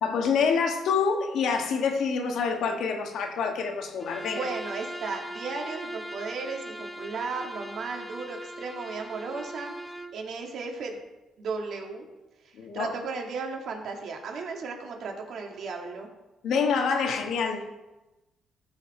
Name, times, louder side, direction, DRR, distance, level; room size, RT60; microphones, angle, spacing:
voice 1, 0.0-4.5 12.6-12.9 16.4-17.6, left 5 dB, 75° left, 1.5 m, -26 dB
Bowed string instrument, 4.0-10.2, right 1 dB, 10° left, 1.0 m, -40 dB
voice 2, 4.3-9.7 10.1-11.0 11.4-12.1 12.4-16.1, right 4 dB, 65° right, 2.1 m, -35 dB
14.5 x 5.1 x 4.4 m
cardioid pair, 90°, 0 cm